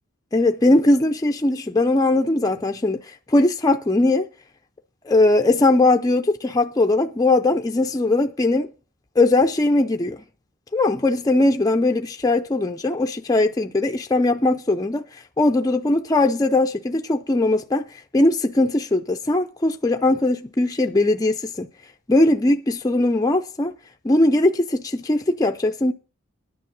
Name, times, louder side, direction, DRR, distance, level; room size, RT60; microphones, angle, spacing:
voice 1, 0.3-4.3 5.1-8.7 9.2-10.2 10.7-15.0 15.4-17.9 18.1-21.7 22.1-23.7 24.0-25.9, left 2 dB, 15° left, 0.4 m, -20 dB
10.0 x 5.9 x 7.2 m
head